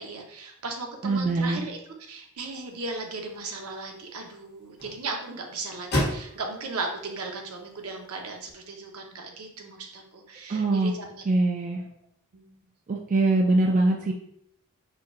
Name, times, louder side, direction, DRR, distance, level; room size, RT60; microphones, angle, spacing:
voice 1, 0.0-11.1 12.3-12.5, right 3 dB, 75° right, 2 dB, 0.8 m, -36 dB
voice 2, 1.0-1.6 10.5-10.9 11.3-11.8 12.9-14.1, right 2 dB, 35° right, 1 dB, 0.4 m, -23 dB
sound 1, 2.4-8.5, equal, 45° left, 1.4 m, -36 dB
4.4 x 2.3 x 3.7 m, 0.70 s
head